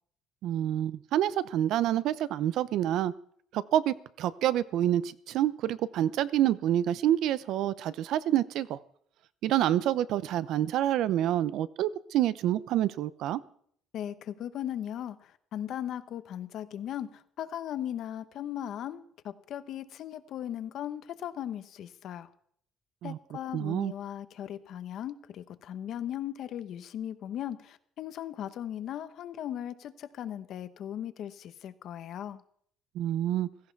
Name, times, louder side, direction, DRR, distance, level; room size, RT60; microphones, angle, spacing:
voice 1, 0.4-3.1 3.5-8.8 9.4-13.4 23.0-23.2 23.5-23.9 32.9-33.5, right 12 dB, 65° right, 17 dB, 0.6 m, -27 dB
voice 2, 13.9-22.3 23.0-32.4, left 10 dB, 55° left, 12 dB, 0.9 m, -38 dB
16.5 x 14.5 x 4.6 m, 0.64 s
cardioid pair, 160°, 0 cm